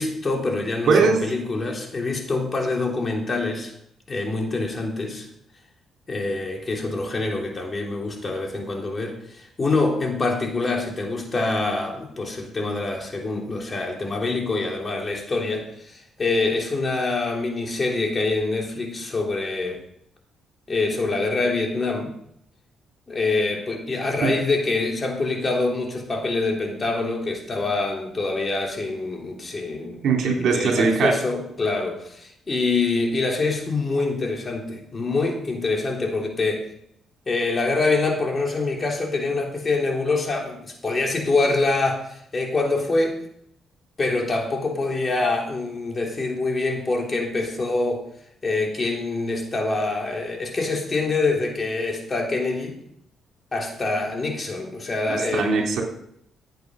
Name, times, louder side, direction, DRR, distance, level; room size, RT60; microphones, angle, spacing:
voice 1, 0.0-3.7 4.1-5.3 6.1-19.8 20.7-22.1 23.1-36.7 37.3-43.2 44.0-48.0 48.4-52.8 53.5-55.5, left 3 dB, 30° left, 1 dB, 3.3 m, -25 dB
voice 2, 0.9-1.2 24.2-24.3 30.0-31.1 55.1-55.8, right 4 dB, 70° right, 1 dB, 3.5 m, -20 dB
15.0 x 8.4 x 5.4 m, 0.72 s
cardioid pair, 90°, 0 cm